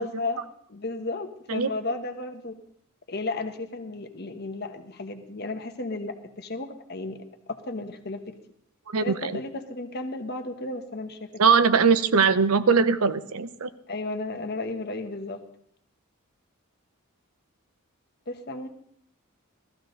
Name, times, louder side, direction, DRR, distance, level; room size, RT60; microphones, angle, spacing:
voice 1, 0.0-2.6 3.1-8.3 9.0-11.3 13.9-15.4 18.3-18.7, left 2 dB, 50° left, 6 dB, 1.2 m, -34 dB
voice 2, 8.9-9.4 11.4-13.7, right 5 dB, 85° right, 12 dB, 0.8 m, -21 dB
15.5 x 14.0 x 3.9 m, 0.67 s
head